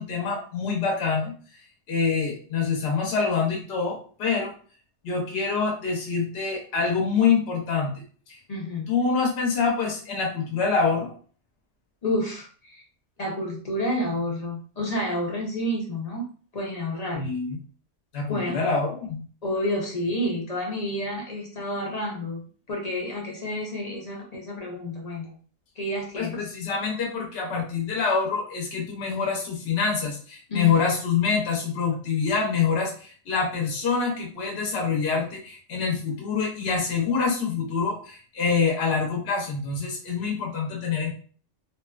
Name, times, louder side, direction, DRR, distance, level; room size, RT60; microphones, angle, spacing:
voice 1, 0.0-1.6 1.9-4.5 5.0-8.0 8.3-8.4 8.9-11.1 17.1-17.6 18.1-19.3 26.1-41.2, left 5 dB, 60° left, -1 dB, 0.9 m, -26 dB
voice 2, 8.5-8.9 12.0-12.8 13.2-16.2 16.5-17.3 18.3-18.6 19.4-25.4 25.8-26.5 30.5-30.9, left 1 dB, 40° left, -2 dB, 0.6 m, -30 dB
2.7 x 2.3 x 2.3 m, 0.42 s
omnidirectional pair, 1.3 m